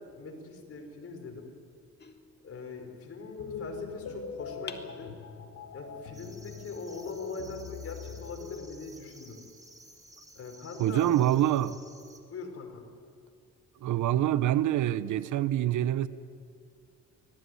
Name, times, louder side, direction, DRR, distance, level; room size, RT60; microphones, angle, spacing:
voice 1, 0.0-1.5 2.4-5.1 5.7-9.4 10.3-11.3 12.3-12.8, left 4 dB, 50° left, 5.5 m, -42 dB
sound 1, 2.0-3.1 4.7-5.7, left 5 dB, 35° left, 2.3 m, -48 dB
sound 2, 3.4-8.7, left 6 dB, 70° left, 2.3 m, -42 dB
sound 3, 6.1-12.2, right 1 dB, 10° right, 3.8 m, -55 dB
voice 2, 10.8-11.8 13.8-16.1, right 12 dB, 75° right, 1.0 m, -26 dB
25.0 x 18.0 x 9.6 m
cardioid pair, 90°, 30 cm